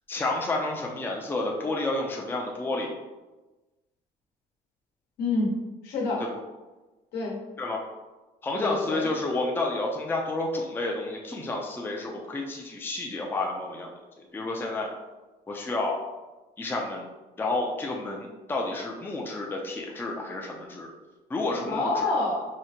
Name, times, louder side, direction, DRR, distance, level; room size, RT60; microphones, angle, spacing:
voice 1, 0.1-2.9 6.2-6.4 7.6-7.8 8.4-14.9 15.5-16.0 16.6-17.0 17.4-20.9 21.3-22.1, left 2 dB, 10° left, -1 dB, 0.5 m, -30 dB
voice 2, 5.2-5.6 5.8-6.2 7.1-7.4 8.5-9.1 21.6-22.5, left 3 dB, 75° left, -4 dB, 1.1 m, -27 dB
4.9 x 2.1 x 2.8 m, 1.2 s
cardioid pair, 110°, 17 cm